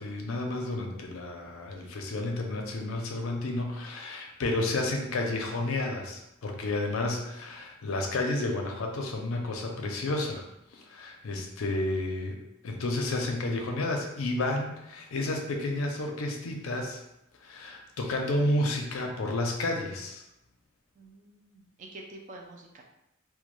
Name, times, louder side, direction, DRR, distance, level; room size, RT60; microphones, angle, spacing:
voice 1, 0.0-10.5 10.7-12.4 12.6-17.0 17.4-20.2, left 2 dB, 75° left, 2 dB, 0.5 m, -31 dB
voice 2, 21.0-22.8, right 2 dB, 35° right, 1 dB, 0.4 m, -47 dB
2.2 x 2.2 x 3.0 m, 0.85 s
head